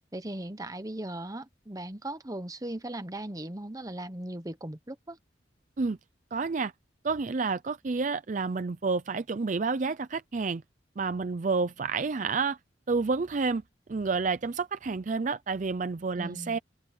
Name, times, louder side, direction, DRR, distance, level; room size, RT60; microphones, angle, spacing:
voice 1, 0.1-5.2 16.2-16.6, right 1 dB, 20° right, 1.0 m, -38 dB
voice 2, 6.3-6.7 7.0-10.6 11.0-12.6 12.9-13.6 13.9-16.6, right 4 dB, 40° right, 0.5 m, -29 dB
open air
head